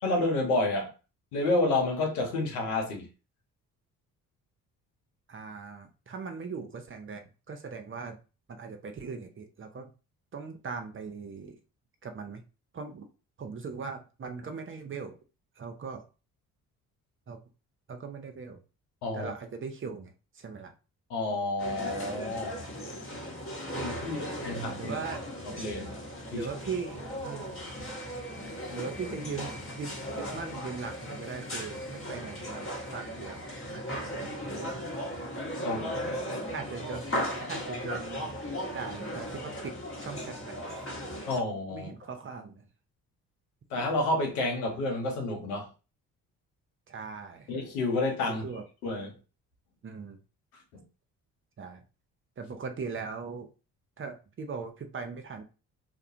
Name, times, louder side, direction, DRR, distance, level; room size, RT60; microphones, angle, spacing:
voice 1, 0.0-0.9 1.3-3.1 19.0-19.3 21.1-22.6 23.7-24.9 25.4-26.0 26.3-26.5 35.6-36.1 41.3-41.9 43.7-45.7 47.5-48.4 48.8-49.1 50.7-50.8, left 2 dB, 85° left, 0.8 m, -30 dB
voice 2, 5.3-8.2 8.5-9.9 10.3-11.6 12.0-12.4 12.7-13.1 13.4-15.2 15.6-16.0 17.3-17.4 17.9-18.6 19.1-20.7 24.0-24.5 24.8-25.3 26.3-27.7 28.7-35.0 35.6-35.7 36.5-38.3 38.7-40.9 41.7-42.7 46.9-47.5 48.3-48.6 49.8-50.2 51.6-51.8 52.4-53.5 54.0-55.4, right 5 dB, 30° right, 0.6 m, -40 dB
sound 1, 21.6-41.4, equal, 30° left, 1.0 m, -37 dB
2.4 x 2.1 x 2.7 m
hypercardioid pair, 45°, 44 cm